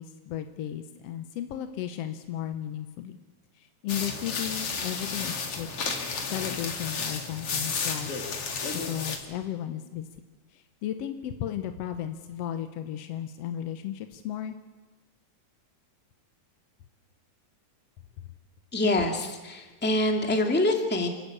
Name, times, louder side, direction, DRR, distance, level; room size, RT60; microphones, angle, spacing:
voice 1, 0.0-3.2 3.5-5.7 6.3-10.1 10.5-14.6, left 11 dB, 65° left, 7 dB, 1.7 m, -35 dB
sound 1, 3.9-9.2, left 5 dB, 50° left, 2.8 m, -32 dB
voice 2, 18.7-21.1, left 1 dB, 5° left, 3 dB, 1.7 m, -25 dB
28.0 x 13.5 x 8.7 m, 1.3 s
omnidirectional pair, 3.6 m